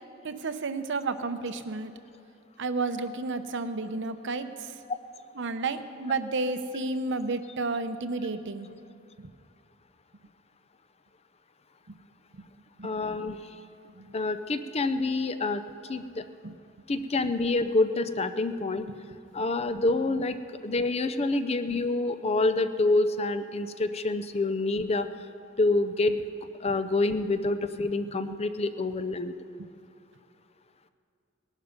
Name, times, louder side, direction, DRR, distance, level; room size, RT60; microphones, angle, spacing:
voice 1, 0.2-1.9 2.6-4.5 5.4-8.7 12.8-12.9 14.0-14.1 16.4-16.5 18.9-19.0, right 3 dB, 60° right, 10 dB, 0.8 m, -31 dB
voice 2, 12.8-13.4 14.1-16.2 16.9-18.9 19.3-20.4 20.6-25.1 25.6-26.2 26.6-29.3, left 2 dB, 30° left, 11 dB, 0.5 m, -27 dB
19.0 x 11.5 x 5.2 m, 2.4 s
head